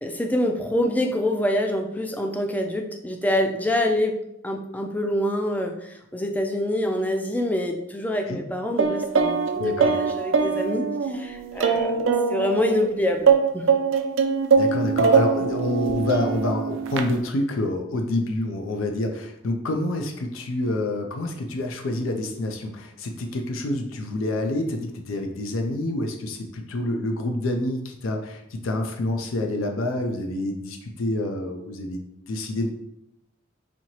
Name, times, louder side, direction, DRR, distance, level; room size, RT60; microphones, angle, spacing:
voice 1, 0.0-4.2 4.4-5.7 6.1-10.9 11.1-13.6, left 1 dB, 10° left, 4 dB, 0.3 m, -25 dB
sound 1, 8.8-12.8 13.3-17.2, right 5 dB, 65° right, 0.4 m, -22 dB
voice 2, 9.6-10.0 14.6-32.7, left 1 dB, 75° left, 3 dB, 0.5 m, -27 dB
4.2 x 2.8 x 2.9 m, 0.81 s
head